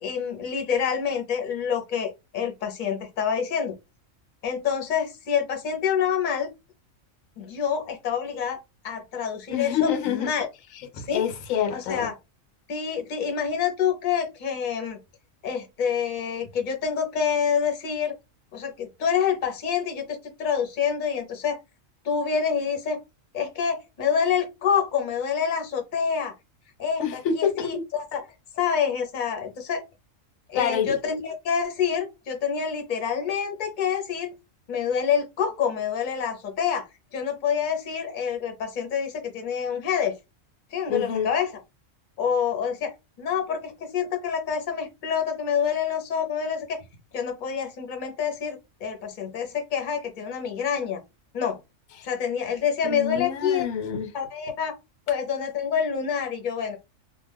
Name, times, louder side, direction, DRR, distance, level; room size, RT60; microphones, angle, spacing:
voice 1, 0.0-3.7 4.4-6.5 7.4-8.6 8.8-10.5 11.0-11.2 11.7-12.1 12.7-15.0 15.4-18.1 18.5-21.6 22.0-23.0 23.3-26.3 26.8-27.0 27.3-28.2 28.5-29.8 30.5-34.3 34.7-36.9 37.1-40.2 40.7-41.6 42.2-42.9 43.2-46.8 47.1-51.0 51.3-51.6 52.0-53.6 54.1-54.7 55.1-56.8, left 7 dB, 45° left, 0.8 m, -27 dB
voice 2, 9.5-10.3 10.9-12.1 27.0-27.8 30.5-31.0 40.9-41.3 52.0-52.1 52.8-54.1, left 8 dB, 85° left, 1.0 m, -27 dB
2.3 x 2.3 x 3.3 m
omnidirectional pair, 1.3 m